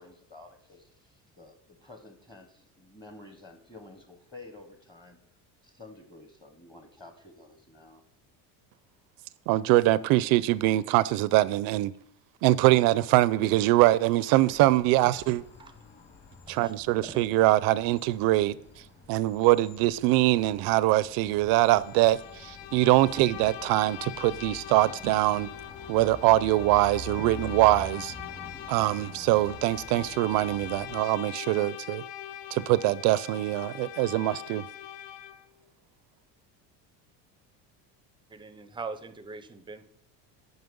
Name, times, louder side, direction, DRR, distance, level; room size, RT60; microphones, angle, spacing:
voice 1, 0.0-5.2 5.6-8.0, left 2 dB, 15° left, 1.0 m, -50 dB
voice 2, 9.5-11.9 12.4-15.4 16.5-18.5 19.1-25.5 25.9-28.1 28.7-32.0 32.5-34.6, right 17 dB, 70° right, 0.5 m, -23 dB
sound 1, 14.4-31.0, left 3 dB, 30° left, 1.8 m, -46 dB
voice 3, 16.5-17.4 38.3-39.9, right 4 dB, 15° right, 0.5 m, -42 dB
Bowed string instrument, 21.6-35.5, left 11 dB, 60° left, 0.6 m, -42 dB
9.5 x 5.4 x 5.3 m
cardioid pair, 145°, 37 cm